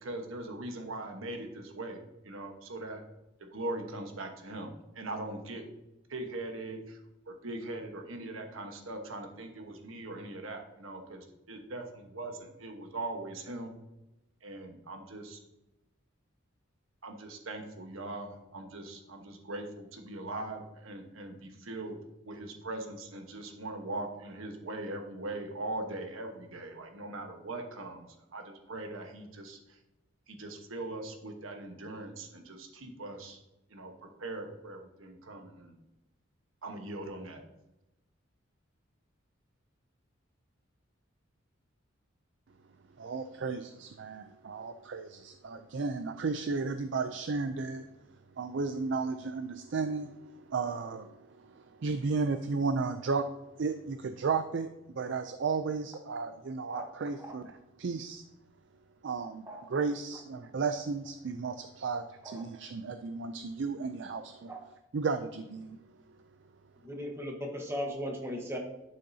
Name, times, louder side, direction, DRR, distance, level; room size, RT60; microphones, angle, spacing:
voice 1, 0.0-2.0 2.2-3.0 3.4-4.7 4.9-5.7 6.1-7.0 7.3-13.7 14.4-15.4 17.0-22.0 22.2-29.6 30.3-33.4 33.7-35.7 36.6-37.4, right 2 dB, 80° right, 4 dB, 1.2 m, -41 dB
voice 2, 43.0-47.9 48.4-53.3 53.6-54.7 55.0-57.5 57.8-58.2 59.0-64.5 64.9-65.8, right 4 dB, 60° right, 9 dB, 0.4 m, -34 dB
voice 3, 66.8-68.6, equal, 10° right, 1 dB, 1.2 m, -37 dB
11.5 x 6.5 x 2.8 m, 0.94 s
head